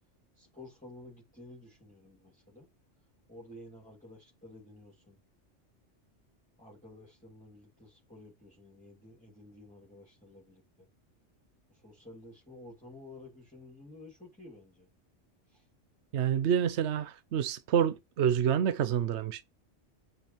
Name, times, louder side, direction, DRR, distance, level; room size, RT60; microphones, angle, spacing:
voice 1, 0.3-2.7 3.3-5.2 6.6-10.9 11.7-14.9 15.5-15.6, left 1 dB, 5° left, 2.8 m, -52 dB
voice 2, 16.1-19.4, right 8 dB, 70° right, 1.0 m, -28 dB
8.9 x 6.9 x 3.2 m
omnidirectional pair, 1.2 m